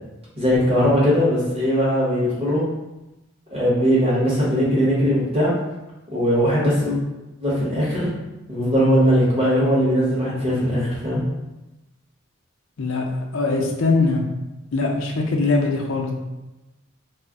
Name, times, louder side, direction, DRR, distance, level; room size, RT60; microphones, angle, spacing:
voice 1, 0.4-2.6 3.5-5.5 6.1-7.0 7.4-8.1 8.5-11.2, equal, 25° right, -7 dB, 0.9 m, -19 dB
voice 2, 13.3-14.2 14.7-16.1, left 3 dB, 65° left, 0 dB, 0.5 m, -21 dB
2.4 x 2.0 x 3.5 m, 1.0 s
head